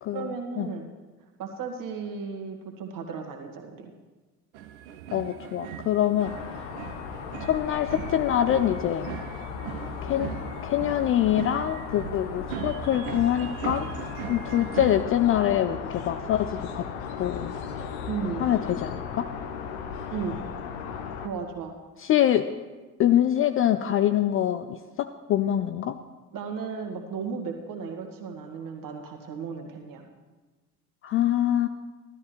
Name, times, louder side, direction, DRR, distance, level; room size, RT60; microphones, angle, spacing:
voice 1, 0.1-0.9 1.4-3.9 18.1-18.5 20.1-20.4 21.2-21.7 26.3-30.1, right 5 dB, 45° right, 4 dB, 1.7 m, -35 dB
sound 1, 4.5-15.0, right 9 dB, 65° right, 0.9 m, -39 dB
voice 2, 5.1-6.3 7.4-9.1 10.0-10.3 10.6-13.9 14.3-16.9 17.2-17.5 18.4-19.3 22.0-22.5 23.0-26.0 31.0-31.7, left 11 dB, 30° left, 10 dB, 0.4 m, -24 dB
sound 2, 6.2-21.3, left 7 dB, 65° left, 1.1 m, -36 dB
15.5 x 12.5 x 3.1 m, 1.3 s
figure-of-eight pair, 55°, 46 cm